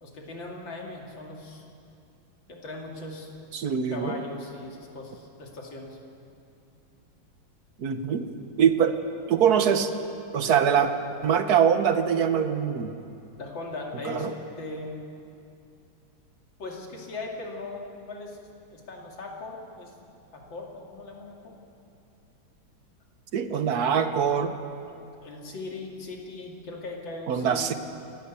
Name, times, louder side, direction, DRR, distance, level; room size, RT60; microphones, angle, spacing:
voice 1, 0.0-1.6 2.5-3.3 3.9-6.0 13.4-14.3 14.6-15.0 16.6-19.9 20.3-21.5 24.9-27.7, left 2 dB, 65° left, 0 dB, 3.1 m, -39 dB
voice 2, 3.5-4.2 7.8-8.2 8.6-9.0 9.3-9.9 10.3-10.9 11.2-12.9 14.0-14.3 23.3-24.5 27.3-27.7, right 8 dB, 55° right, 9 dB, 1.3 m, -23 dB
29.0 x 11.0 x 8.3 m, 2.6 s
omnidirectional pair, 2.3 m